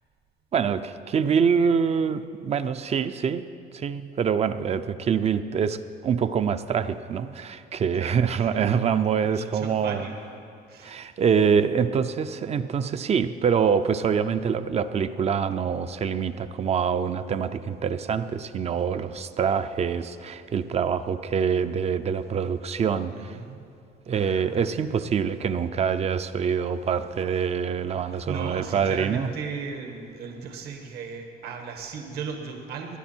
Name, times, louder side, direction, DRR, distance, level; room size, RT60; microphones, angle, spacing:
voice 1, 0.5-3.4 3.7-10.1 10.8-23.4 24.1-29.3, right 7 dB, 40° right, 11 dB, 0.6 m, -25 dB
voice 2, 7.9-8.6 9.2-10.4 10.7-11.1 23.1-23.6 24.1-24.5 24.8-24.9 28.1-33.0, right 5 dB, 70° right, 4 dB, 1.6 m, -37 dB
18.0 x 11.0 x 4.5 m, 2.5 s
cardioid pair, 110°, 17 cm